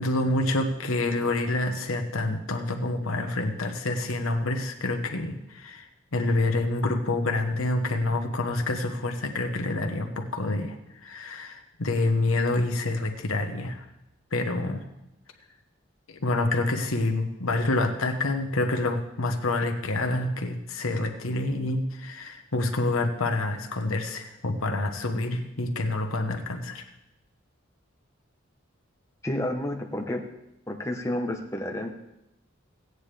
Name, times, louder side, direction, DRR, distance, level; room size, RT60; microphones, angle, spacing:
voice 1, 0.0-5.8 6.1-10.8 11.0-13.9 14.3-14.8 16.1-26.8, left 2 dB, 85° left, 5 dB, 1.1 m, -27 dB
voice 2, 29.2-30.2 30.7-31.9, left 1 dB, 15° left, 3 dB, 0.9 m, -30 dB
15.5 x 9.5 x 3.4 m, 0.87 s
head